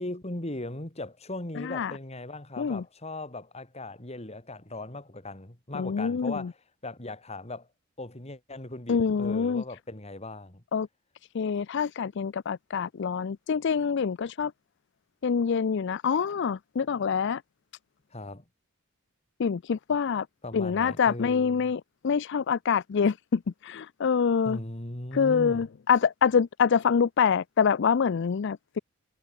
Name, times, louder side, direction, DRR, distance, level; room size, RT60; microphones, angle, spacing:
voice 1, 0.0-6.5 6.8-7.7 8.0-10.6 18.1-18.4 20.4-21.7 24.4-25.7, left 2 dB, 30° left, 2.8 m, -38 dB
voice 2, 1.6-1.9 2.6-2.8 5.7-6.5 8.9-9.6 10.7-10.9 11.3-14.5 15.2-17.4 19.4-20.3 20.5-24.6 25.1-28.8, left 6 dB, 60° left, 0.4 m, -26 dB
head